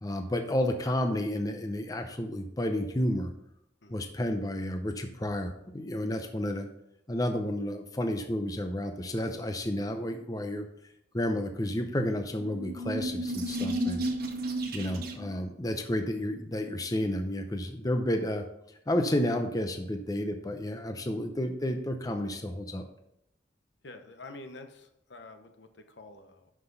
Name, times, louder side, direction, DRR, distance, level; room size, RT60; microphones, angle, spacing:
voice 1, 0.0-3.3 3.9-6.7 7.1-10.7 11.1-14.0 14.7-18.4 18.9-22.8, left 1 dB, 20° left, 6 dB, 0.6 m, -31 dB
sound 1, 12.4-15.4, right 1 dB, 55° right, 1.4 m, -33 dB
voice 2, 23.8-26.5, left 2 dB, 70° left, 7 dB, 1.0 m, -48 dB
11.5 x 5.8 x 4.0 m, 0.81 s
head